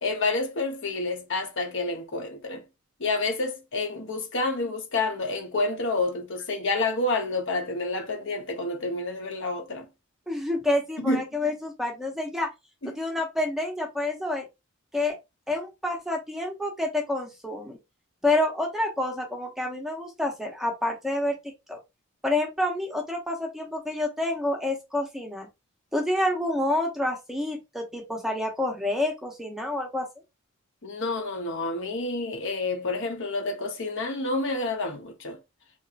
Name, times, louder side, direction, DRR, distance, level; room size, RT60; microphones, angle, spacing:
voice 1, 0.0-2.6 3.0-9.9 11.0-11.2 30.8-35.4, left 2 dB, 60° left, 0.9 m, -29 dB
voice 2, 10.3-12.5 12.8-14.5 14.9-15.1 15.5-17.8 18.2-21.4 21.7-21.8 22.2-25.5 25.9-30.1, left 1 dB, ahead, 0.7 m, -28 dB
3.0 x 2.7 x 2.4 m
head